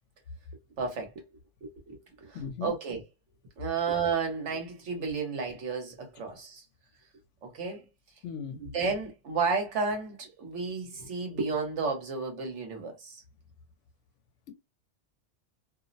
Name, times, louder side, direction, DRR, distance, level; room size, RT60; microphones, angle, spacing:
voice 1, 0.8-1.3 1.6-3.0 3.6-6.6 7.4-7.8 8.6-13.2, right 4 dB, 75° right, 1.2 m, -32 dB
voice 2, 2.3-2.7 8.2-8.6, left 6 dB, 85° left, 0.9 m, -37 dB
2.7 x 2.0 x 2.6 m
omnidirectional pair, 1.2 m